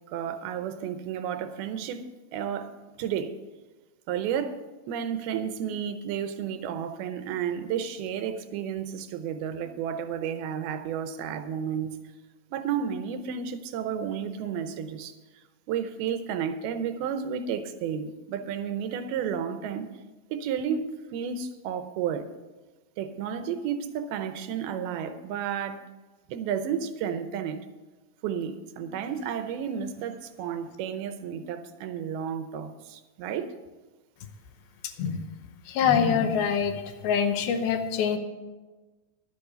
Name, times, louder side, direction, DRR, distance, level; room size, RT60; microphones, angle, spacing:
voice 1, 0.1-3.3 4.1-12.0 12.5-15.1 15.7-19.9 20.3-22.3 23.0-25.8 26.3-27.7 28.2-33.5, right 8 dB, 85° right, 9 dB, 2.7 m, -32 dB
voice 2, 35.7-38.2, left 7 dB, 80° left, 7 dB, 2.7 m, -25 dB
11.0 x 8.3 x 6.8 m, 1.2 s
omnidirectional pair, 4.4 m